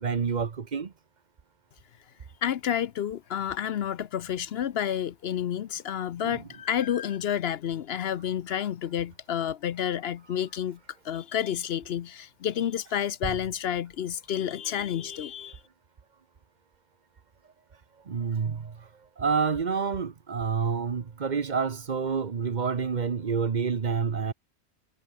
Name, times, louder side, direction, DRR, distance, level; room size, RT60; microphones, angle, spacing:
voice 1, 0.0-0.9 6.2-6.4 18.1-18.8 19.2-24.3, right 6 dB, 45° right, 1.0 m, -28 dB
voice 2, 2.4-10.8 11.0-15.6, left 9 dB, 65° left, 0.9 m, -30 dB
omnidirectional pair, 1.1 m